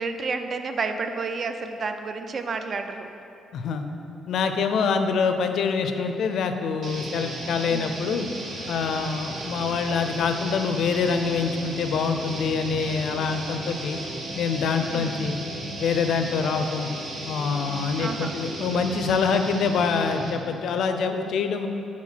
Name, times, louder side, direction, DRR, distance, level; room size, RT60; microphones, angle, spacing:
voice 1, 0.0-3.1 7.7-8.0 14.9-15.4 18.0-18.4, right 4 dB, 45° right, 7 dB, 0.4 m, -31 dB
voice 2, 3.5-3.9 4.3-8.3 8.7-14.0 14.4-15.4 15.8-16.9 17.3-21.7, left 5 dB, 70° left, 7 dB, 0.4 m, -25 dB
sound 1, 6.8-20.5, right 1 dB, 60° right, 0.9 m, -35 dB
sound 2, 8.3-14.1, equal, 80° right, 1.4 m, -46 dB
4.4 x 4.4 x 5.7 m, 2.8 s
cardioid pair, 90°, 0 cm